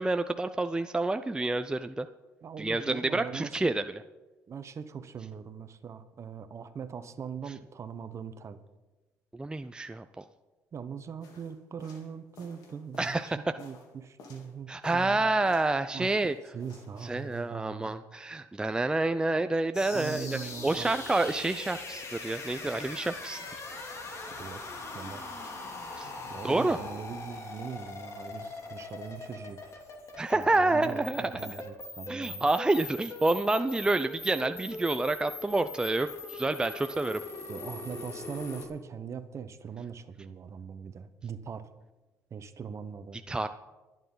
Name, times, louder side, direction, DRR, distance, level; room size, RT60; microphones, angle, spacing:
voice 1, 0.0-2.1 2.6-3.8 9.3-10.2 13.0-13.4 14.7-16.4 17.0-23.4 25.9-26.1 26.4-26.8 30.2-31.6 32.1-37.2 43.3-43.5, right 2 dB, 10° right, 9 dB, 0.6 m, -28 dB
voice 2, 2.4-3.7 4.5-8.6 10.7-15.3 15.9-16.1 16.5-18.0 19.9-20.9 24.3-24.6 24.9-25.2 26.3-29.6 30.3-32.5 37.5-41.7 42.3-43.2, right 6 dB, 45° right, 11 dB, 1.1 m, -41 dB
sound 1, 11.2-14.5 14.8-15.8 16.0-17.5, left 3 dB, 70° left, 3.2 m, -53 dB
sound 2, 19.7-38.7, left 3 dB, 45° left, 3.0 m, -41 dB
24.5 x 9.3 x 4.0 m, 1.2 s
supercardioid pair, 75°, 7 cm